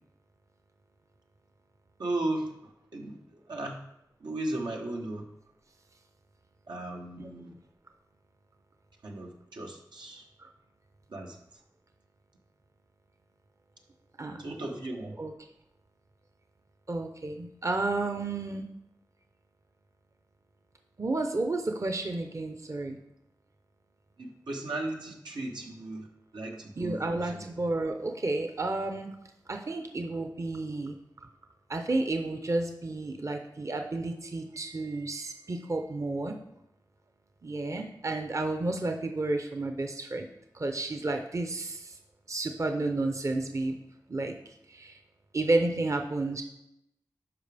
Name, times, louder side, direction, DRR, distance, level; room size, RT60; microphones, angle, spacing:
voice 1, 2.0-2.5 2.9-3.2 3.5-3.8 4.2-5.2 6.7-7.5 9.0-10.2 11.1-11.3 14.4-15.1 24.2-26.1 26.3-27.2, right 2 dB, 90° right, 0 dB, 1.2 m, -35 dB
voice 2, 14.2-14.6 15.2-15.3 16.9-18.7 21.0-23.0 26.8-29.1 29.5-31.0 31.7-36.4 37.4-40.3 40.5-42.0 42.3-43.8 44.1-44.3 44.7-45.0 45.3-46.4, right 2 dB, 45° right, 5 dB, 0.7 m, -31 dB
12.0 x 5.0 x 3.4 m, 0.82 s
wide cardioid pair, 60°, 7 cm